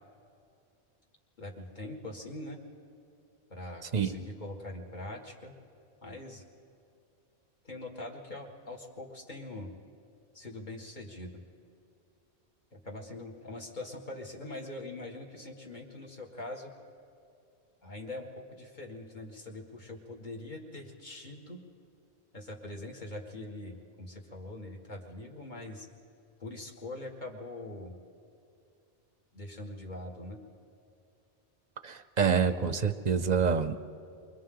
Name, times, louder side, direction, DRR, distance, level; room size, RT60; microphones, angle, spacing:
voice 1, 1.4-2.6 3.5-5.5 6.0-6.4 7.6-9.7 10.3-11.4 12.7-16.7 17.8-21.6 22.3-25.9 26.4-28.0 29.3-30.4, left 2 dB, 40° left, 0 dB, 2.0 m, -43 dB
voice 2, 3.9-4.3 31.8-33.8, right 6 dB, 45° right, 10 dB, 0.7 m, -27 dB
29.5 x 23.5 x 3.9 m, 2.6 s
omnidirectional pair, 1.2 m